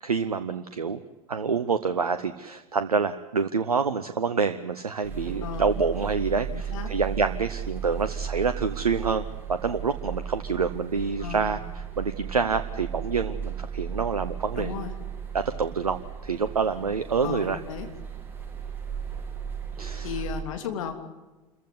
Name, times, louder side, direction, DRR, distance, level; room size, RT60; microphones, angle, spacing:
voice 1, 0.0-1.0 1.3-9.2 9.5-14.7 15.3-17.6 19.8-20.1, right 5 dB, 80° right, 10 dB, 0.9 m, -27 dB
sound 1, 5.0-20.4, right 8 dB, 10° right, 6.4 m, -35 dB
voice 2, 5.4-5.7 6.5-6.9 11.2-11.5 14.5-14.9 17.2-17.9 20.0-20.9, left 8 dB, 60° left, 5 dB, 3.1 m, -34 dB
27.0 x 15.0 x 9.7 m, 1.2 s
figure-of-eight pair, 80°, 19 cm